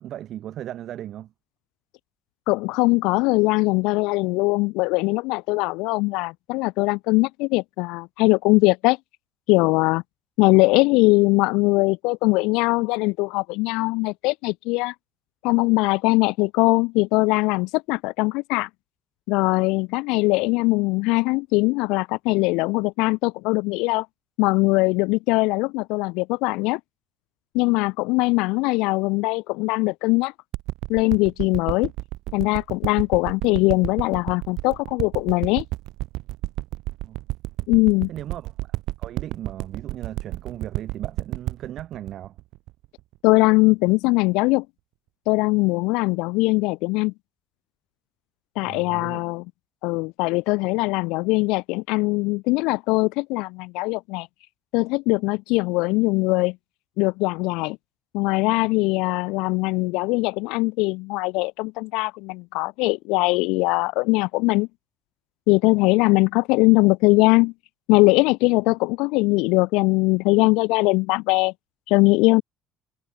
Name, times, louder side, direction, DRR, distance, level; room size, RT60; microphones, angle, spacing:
voice 1, 0.0-1.3 37.0-37.2 38.1-38.5 39.0-42.4 48.6-49.2, right 12 dB, 55° right, 1.9 m, -37 dB
voice 2, 2.5-9.0 9.5-10.0 10.4-14.9 15.4-18.7 19.3-24.1 24.4-26.8 27.5-30.3 30.9-31.9 32.3-35.6 37.7-38.1 43.2-44.7 45.3-47.1 48.6-49.4 49.8-54.3 54.7-56.6 57.0-57.8 58.1-64.7 65.5-67.5 67.9-71.5 71.9-72.4, left 25 dB, 85° left, 0.3 m, -21 dB
sound 1, 30.5-43.3 43.9-44.0, right 18 dB, 75° right, 0.9 m, -31 dB
cardioid pair, 110°, 0 cm